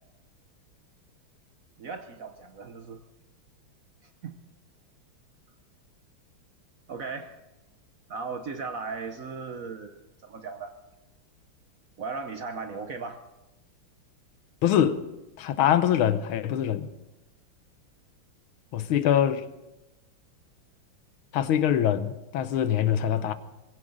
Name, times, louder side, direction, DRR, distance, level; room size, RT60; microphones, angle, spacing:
voice 1, 1.8-3.0 4.2-4.4 6.9-7.4 8.1-10.0 10.2-10.8 12.0-13.2, right 4 dB, 55° right, 1.0 m, -37 dB
voice 2, 14.6-15.0 15.4-16.9 18.7-19.4 21.3-23.3, left 10 dB, 80° left, 1.7 m, -24 dB
21.0 x 16.0 x 3.9 m
omnidirectional pair, 2.3 m